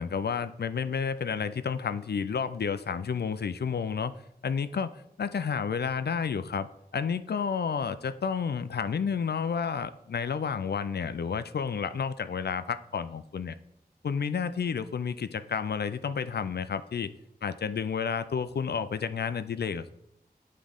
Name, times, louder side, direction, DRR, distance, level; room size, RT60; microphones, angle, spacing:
voice 1, 0.0-4.1 4.4-6.7 6.9-13.6 14.0-17.1 17.4-19.9, left 6 dB, 80° left, 12 dB, 0.4 m, -31 dB
9.5 x 3.7 x 3.5 m, 0.82 s
wide cardioid pair, 60°, 17 cm